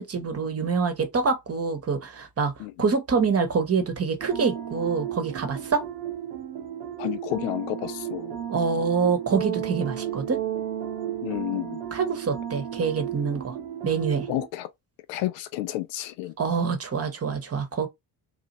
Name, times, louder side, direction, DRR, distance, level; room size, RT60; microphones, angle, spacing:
voice 1, 0.0-2.5 2.8-5.8 8.5-10.4 11.9-13.6 13.8-14.3 16.4-17.9, right 5 dB, 30° right, 1.0 m, -26 dB
sound 1, 4.2-14.5, right 10 dB, 80° right, 0.8 m, -33 dB
voice 2, 7.0-8.4 11.2-11.8 14.3-14.7 15.1-16.3, left 16 dB, 60° left, 0.5 m, -31 dB
2.8 x 2.4 x 2.6 m
hypercardioid pair, 55°, 50 cm